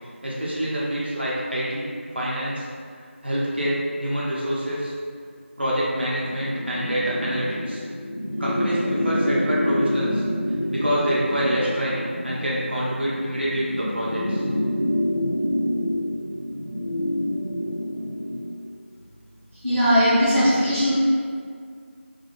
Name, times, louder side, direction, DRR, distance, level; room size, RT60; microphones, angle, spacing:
voice 1, 0.2-2.7 3.2-4.9 5.6-7.8 8.4-10.3 10.7-14.5, equal, 55° right, -7 dB, 0.5 m, -26 dB
sound 1, 6.2-18.5, left 1 dB, 45° left, 0.8 m, -27 dB
voice 2, 19.6-20.9, equal, 15° right, -17 dB, 0.7 m, -19 dB
2.5 x 2.4 x 2.7 m, 2.1 s
figure-of-eight pair, 175°, 7 cm